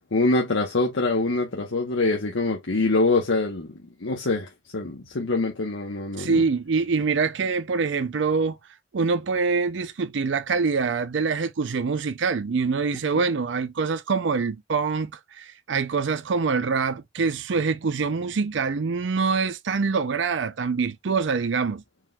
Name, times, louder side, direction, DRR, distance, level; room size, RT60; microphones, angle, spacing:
voice 1, 0.1-3.7 4.0-4.5 4.7-6.3, left 3 dB, 80° left, 1.0 m, -24 dB
voice 2, 6.2-8.6 8.9-21.8, right 4 dB, 70° right, 0.5 m, -25 dB
4.6 x 3.8 x 2.3 m
head